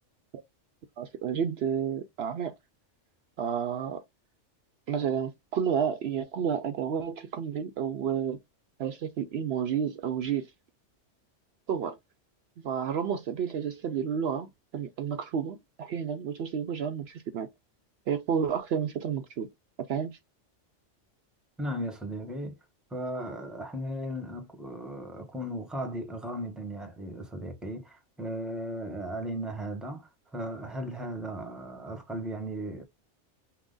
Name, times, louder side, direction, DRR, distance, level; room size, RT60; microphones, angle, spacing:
voice 1, 1.0-2.5 3.4-4.0 4.9-8.4 8.8-10.5 11.7-12.0 12.6-17.5 18.1-19.5 19.9-20.1, right 7 dB, 65° right, 0.8 m, -31 dB
voice 2, 21.6-22.6 22.9-32.8, equal, ahead, 0.9 m, -36 dB
5.8 x 2.2 x 3.8 m
omnidirectional pair, 1.2 m